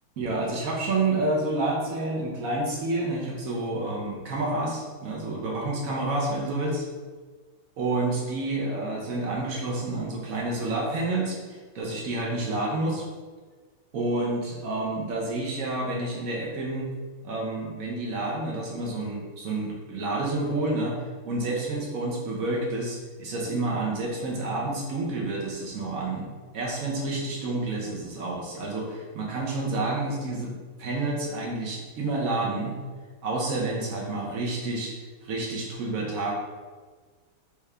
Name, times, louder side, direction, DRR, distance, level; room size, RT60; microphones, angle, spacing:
voice 1, 0.2-6.8 7.8-13.0 13.9-16.9 17.2-30.5 30.8-32.8 33.2-34.9 35.2-36.3, right 2 dB, 70° right, -3 dB, 0.8 m, -29 dB
3.5 x 3.0 x 3.2 m, 1.4 s
omnidirectional pair, 2.2 m